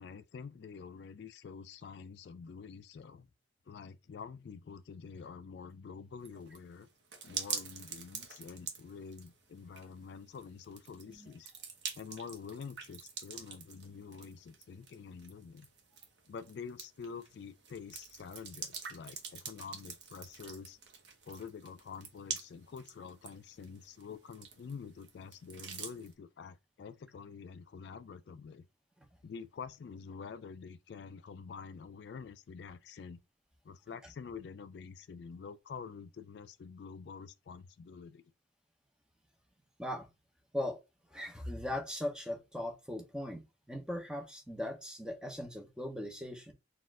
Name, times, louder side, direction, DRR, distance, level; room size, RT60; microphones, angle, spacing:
voice 1, 0.0-3.3 3.7-6.9 7.2-11.5 12.0-15.7 16.3-20.8 21.3-28.7 29.2-33.2 33.6-38.2, left 5 dB, 60° left, 0.3 m, -47 dB
sound 1, 6.2-26.1, right 6 dB, 65° right, 0.9 m, -46 dB
voice 2, 41.1-43.4 43.7-46.5, left 1 dB, 5° right, 0.7 m, -39 dB
4.1 x 2.5 x 3.6 m
head